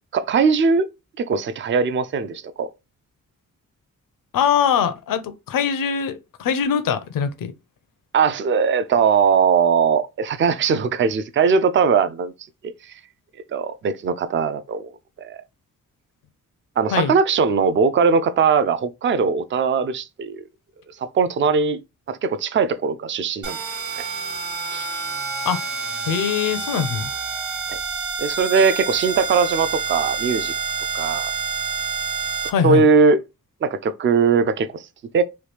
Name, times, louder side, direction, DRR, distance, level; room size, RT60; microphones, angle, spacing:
voice 1, 0.1-0.9 1.2-2.7 8.1-12.3 12.6-12.7 13.5-14.9 15.2-15.4 16.8-20.4 21.0-21.8 22.1-23.6 24.7-24.9 27.7-27.8 28.2-30.5 30.9-31.3 32.6-33.2 33.6-34.9 35.1-35.2, right 5 dB, 35° right, 0.4 m, -20 dB
voice 2, 4.3-7.5 16.9-17.2 25.4-25.6 26.1-27.1 32.4-32.9, left 7 dB, 75° left, 0.6 m, -22 dB
sound 1, 23.4-32.5, right 5 dB, 60° right, 0.9 m, -28 dB
3.1 x 2.4 x 3.2 m
cardioid pair, 85°, 34 cm